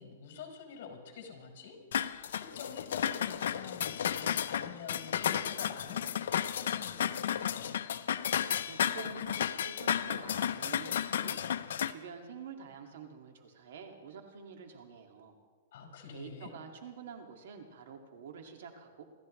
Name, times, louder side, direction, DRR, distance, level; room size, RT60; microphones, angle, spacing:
voice 1, 0.0-1.8 2.0-7.8 15.7-16.5, left 6 dB, 55° left, 2 dB, 4.7 m, -47 dB
sound 1, 1.9-11.9, left 9 dB, 75° left, 0.7 m, -33 dB
voice 2, 8.6-11.4 11.9-15.4 16.1-19.0, right 6 dB, 70° right, 4 dB, 2.3 m, -48 dB
27.5 x 13.5 x 3.3 m, 1.5 s
hypercardioid pair, 160°, 0 cm